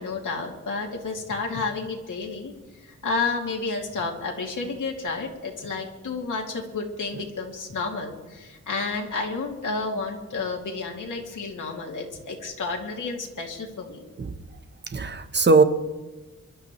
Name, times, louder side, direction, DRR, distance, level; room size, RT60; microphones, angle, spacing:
voice 1, 0.0-2.5 3.0-14.0, left 4 dB, 90° left, 0 dB, 2.6 m, -31 dB
voice 2, 14.9-15.6, right 4 dB, 35° right, 9 dB, 1.0 m, -19 dB
24.5 x 12.5 x 3.2 m, 1.2 s
wide cardioid pair, 155°, 30 cm